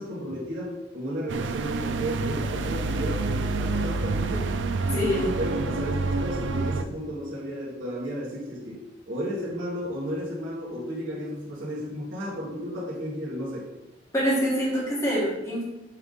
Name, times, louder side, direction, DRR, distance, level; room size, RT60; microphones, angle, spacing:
voice 1, 0.0-4.6 4.9-13.7, equal, 90° right, -7 dB, 2.0 m, -33 dB
sound 1, 1.3-6.8, right 3 dB, 65° right, 0.4 m, -28 dB
voice 2, 14.1-15.6, equal, 15° left, -6 dB, 2.0 m, -25 dB
7.5 x 3.6 x 3.9 m, 0.96 s
head